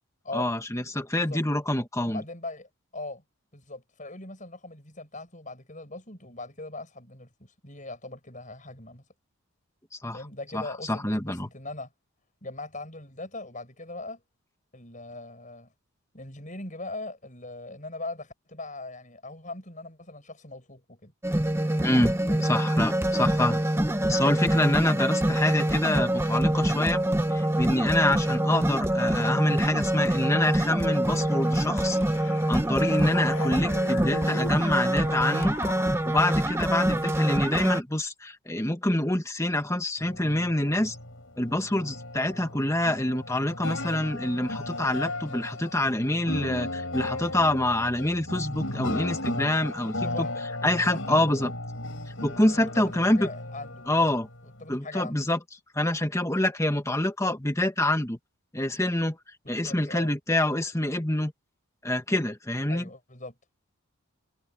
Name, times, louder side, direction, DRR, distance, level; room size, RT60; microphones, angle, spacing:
voice 1, 0.3-2.2 10.0-10.2 10.5-11.5 21.8-22.1 22.5-23.6 24.1-27.0 27.3-32.0 32.5-35.6 36.1-41.0 41.4-50.3 50.6-51.5 52.2-53.3 53.9-54.3 54.7-55.4 55.7-58.2 58.5-59.2 59.5-61.3 61.8-62.9, left 1 dB, 15° left, 1.7 m, -26 dB
voice 2, 2.1-3.2 3.5-9.0 10.1-11.9 12.4-14.2 14.7-15.7 16.1-21.1 22.3-22.5 50.0-50.4 50.7-51.4 52.5-53.9 54.4-55.2 59.4-60.1 62.7-63.4, left 2 dB, 35° left, 7.4 m, -40 dB
sound 1, 21.2-37.8, right 1 dB, 10° right, 0.9 m, -25 dB
sound 2, 30.8-36.6, left 4 dB, 85° left, 4.0 m, -41 dB
sound 3, 40.0-54.7, left 2 dB, 60° left, 7.5 m, -36 dB
head